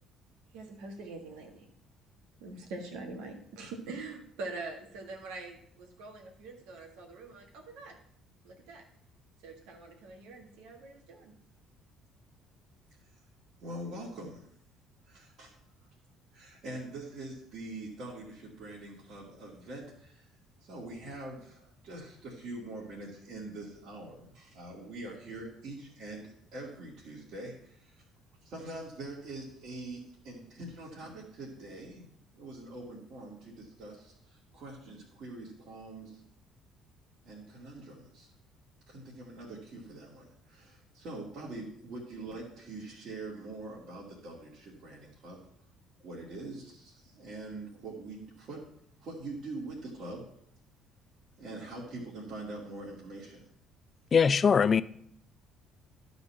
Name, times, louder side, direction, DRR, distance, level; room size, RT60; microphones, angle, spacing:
voice 1, 0.5-1.7 2.4-8.0 8.4-8.8 9.4-11.3, right 3 dB, 75° right, 1.6 m, -44 dB
voice 2, 13.6-14.5 15.1-15.6 16.3-20.2 20.7-28.0 28.4-32.1 32.3-36.2 37.2-38.3 38.9-45.4 46.0-48.6 49.0-50.3 51.4-53.4, right 2 dB, 60° right, 2.4 m, -44 dB
voice 3, 54.1-54.8, left 6 dB, 40° left, 0.4 m, -22 dB
12.0 x 4.1 x 5.7 m
hypercardioid pair, 55°, 0 cm